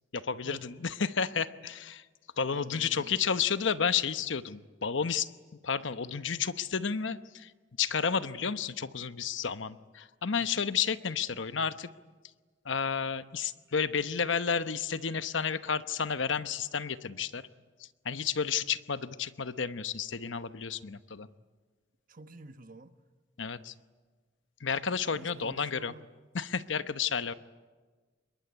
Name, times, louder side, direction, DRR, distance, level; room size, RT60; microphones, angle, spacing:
voice 1, 0.1-2.0 2.4-5.3 5.6-7.5 7.8-11.9 12.6-17.4 18.0-21.3 23.4-23.7 24.6-25.9 26.3-27.3, left 6 dB, 80° left, 0.9 m, -31 dB
voice 2, 2.5-3.2 10.4-10.5 22.1-22.9 25.1-26.0, right 2 dB, 45° right, 1.2 m, -49 dB
27.0 x 22.5 x 9.6 m
head